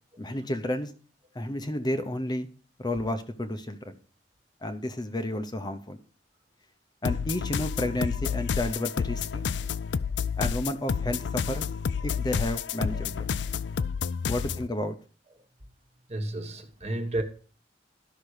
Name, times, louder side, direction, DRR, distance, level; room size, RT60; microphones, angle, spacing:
voice 1, 0.2-0.9 1.3-2.5 2.8-3.9 4.6-6.0 7.0-9.5 10.4-11.7 12.0-13.3 14.3-15.0, left 1 dB, 25° left, 0.8 m, -31 dB
sound 1, 7.0-14.7, left 6 dB, 85° left, 0.4 m, -30 dB
voice 2, 16.1-17.2, right 1 dB, 40° right, 1.4 m, -32 dB
12.0 x 5.8 x 4.9 m
head